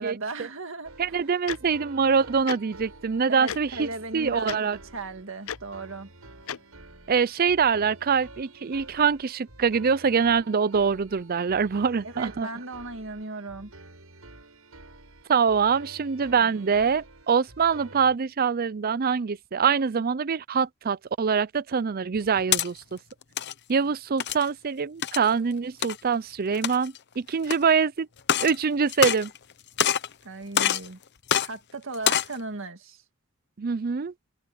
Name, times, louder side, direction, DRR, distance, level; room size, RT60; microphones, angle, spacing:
voice 1, 0.0-1.2 3.3-6.1 12.0-13.7 30.2-31.0 31.4-33.0, right 3 dB, 65° right, 2.0 m, -37 dB
sound 1, 0.8-18.2, right 2 dB, 90° right, 7.9 m, -49 dB
voice 2, 1.0-3.9 4.1-4.8 7.1-12.5 15.3-23.0 23.7-28.1 28.4-29.3 33.6-34.1, right 6 dB, 45° right, 0.5 m, -24 dB
Tick-tock, 1.5-1.6 2.5-2.6 3.5-3.6 4.4-4.6 5.5-5.6 6.5-6.6, left 9 dB, 75° left, 0.5 m, -33 dB
sound 2, 22.2-22.7 23.2-23.5 24.2-24.5 25.0-25.3 25.8-26.0 26.5-27.0 27.5-27.6 28.2-28.6 28.9-29.5 29.8-30.1 30.6-30.9 31.3-31.5 31.9-32.3, left 9 dB, 55° left, 0.9 m, -25 dB
head